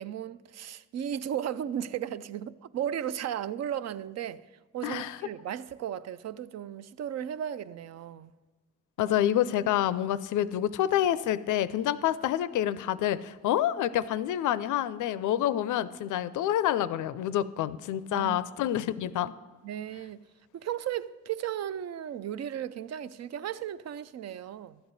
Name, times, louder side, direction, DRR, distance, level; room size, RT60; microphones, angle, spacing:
voice 1, 0.0-4.4 4.7-8.3 9.0-9.2 18.1-18.4 19.6-20.2 20.5-24.8, right 10 dB, 60° right, 0.4 m, -35 dB
voice 2, 4.8-5.2 9.0-19.3, left 11 dB, 80° left, 0.5 m, -28 dB
12.5 x 7.8 x 4.1 m
cardioid pair, 70°, 30 cm